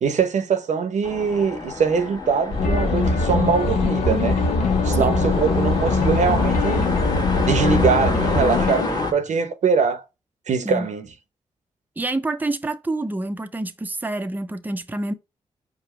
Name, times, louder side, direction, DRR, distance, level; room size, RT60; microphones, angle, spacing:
voice 1, 0.0-4.4 4.8-6.9 7.5-10.0 10.5-11.1, right 5 dB, 70° right, 0.8 m, -22 dB
sound 1, 1.0-9.1, left 3 dB, 35° left, 1.3 m, -29 dB
sound 2, 2.5-8.7, left 1 dB, 60° left, 1.6 m, -24 dB
sound 3, 2.6-8.9, left 8 dB, 80° left, 0.5 m, -25 dB
voice 2, 12.0-15.1, right 2 dB, 15° right, 0.6 m, -27 dB
5.0 x 2.2 x 4.2 m
cardioid pair, 55°, 13 cm